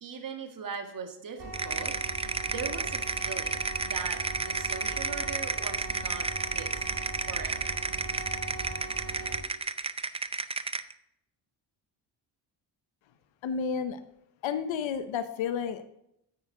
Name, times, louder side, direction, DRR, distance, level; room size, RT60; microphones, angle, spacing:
voice 1, 0.0-2.0 2.5-6.8 7.2-7.8 8.5-8.6, right 5 dB, 45° right, 5 dB, 1.6 m, -40 dB
sound 1, 1.4-9.4, right 2 dB, 60° right, 3.8 m, -40 dB
sound 2, 1.5-10.9, right 4 dB, 15° right, 0.4 m, -32 dB
voice 2, 13.4-14.0 14.4-15.8, left 7 dB, 90° left, 11 dB, 0.9 m, -31 dB
9.4 x 8.9 x 3.7 m, 0.77 s
cardioid pair, 100°, 44 cm